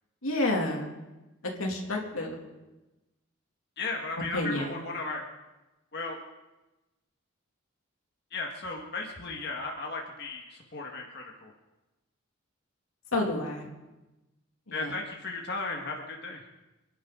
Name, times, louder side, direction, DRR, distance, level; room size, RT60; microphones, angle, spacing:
voice 1, 0.2-0.9 1.6-2.4 4.3-4.8 13.1-13.7 14.7-14.9, left 2 dB, 85° left, 1 dB, 2.8 m, -29 dB
voice 2, 3.8-5.2 5.9-6.2 8.3-11.5 14.7-16.4, left 3 dB, 50° left, 0 dB, 1.8 m, -35 dB
28.0 x 11.5 x 3.9 m, 1.0 s
head